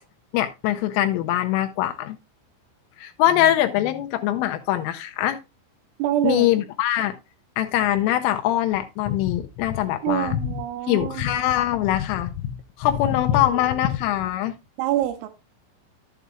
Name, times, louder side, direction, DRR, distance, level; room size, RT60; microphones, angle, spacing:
voice 1, 0.3-2.2 3.0-5.4 6.2-7.2 7.6-10.4 10.9-12.5 12.8-14.6, left 13 dB, 80° left, 3.1 m, -22 dB
voice 2, 6.0-6.5 10.0-11.3 13.3-13.6 14.8-15.3, right 12 dB, 80° right, 3.4 m, -26 dB
12.0 x 8.1 x 2.4 m
omnidirectional pair, 5.9 m